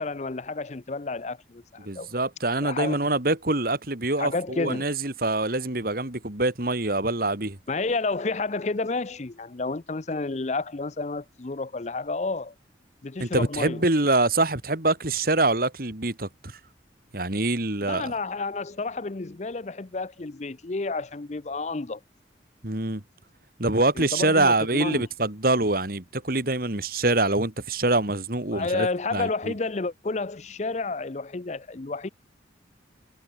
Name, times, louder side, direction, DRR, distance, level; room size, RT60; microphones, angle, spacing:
voice 1, 0.0-2.1 2.6-3.0 4.2-4.9 7.7-12.5 13.0-13.8 17.8-22.0 24.0-25.1 28.5-32.1, left 3 dB, 40° left, 0.6 m, -30 dB
voice 2, 1.8-7.6 13.2-16.5 17.1-18.1 22.6-23.0 23.6-29.5, right 2 dB, 50° right, 2.6 m, -25 dB
head